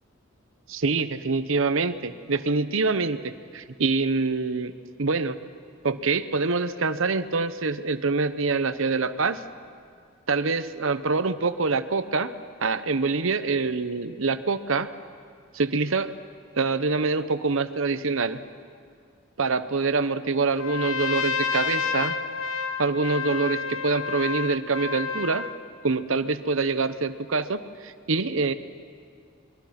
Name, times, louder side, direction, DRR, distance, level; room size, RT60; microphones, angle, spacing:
voice 1, 0.7-4.7 5.0-5.4 5.8-9.4 10.3-12.3 12.6-14.9 15.5-16.1 16.5-18.4 19.4-22.1 22.8-25.4 25.8-28.5, right 4 dB, 70° right, 12 dB, 1.0 m, -25 dB
Trumpet, 20.5-25.6, left 5 dB, 80° left, 1.3 m, -30 dB
27.5 x 22.5 x 6.0 m, 2.2 s
head